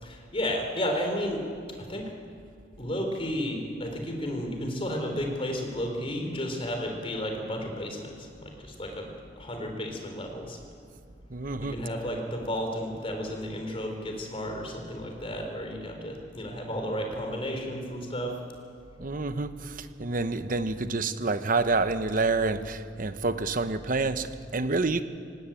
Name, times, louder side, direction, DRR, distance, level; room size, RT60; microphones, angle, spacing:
voice 1, 0.0-1.5 1.8-2.1 2.8-9.1 9.4-10.6 11.5-18.3, equal, 30° left, 3 dB, 3.7 m, -32 dB
voice 2, 11.3-11.7 19.0-25.0, right 3 dB, 45° right, 11 dB, 0.9 m, -28 dB
19.0 x 17.5 x 9.0 m, 2.2 s
head